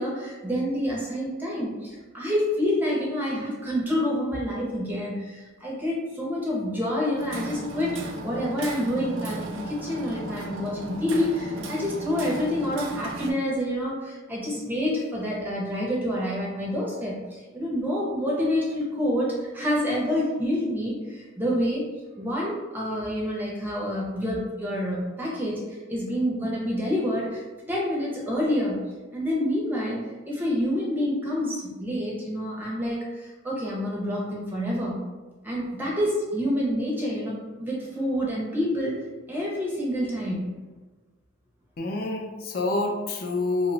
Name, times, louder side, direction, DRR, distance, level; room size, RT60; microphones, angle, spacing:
voice 1, 0.0-21.8 22.2-30.0 30.3-35.0 35.4-39.0 39.3-40.5, equal, 10° right, -4 dB, 0.5 m, -28 dB
Hammer, 7.2-13.3, right 2 dB, 80° right, 0.5 m, -35 dB
voice 2, 41.8-43.7, left 2 dB, 50° left, 2 dB, 0.4 m, -27 dB
2.9 x 2.1 x 3.8 m, 1.3 s
head